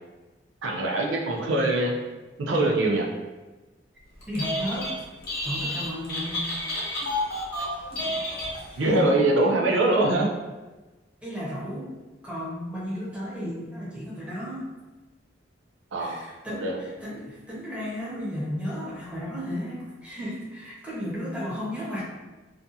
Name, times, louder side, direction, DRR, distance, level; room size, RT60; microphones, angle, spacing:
voice 1, 0.6-1.9 2.4-3.1 7.6-7.7 8.8-10.3 15.9-16.2 16.6-16.8, right 2 dB, 85° right, 0 dB, 0.5 m, -23 dB
Telephone, 4.2-4.9 5.2-8.9, left 1 dB, 55° left, 0.8 m, -30 dB
voice 2, 4.3-4.9 5.4-6.4 11.2-11.9 12.2-14.7 16.0-22.0, equal, 5° right, -8 dB, 0.6 m, -34 dB
2.4 x 2.2 x 2.6 m, 1.2 s
head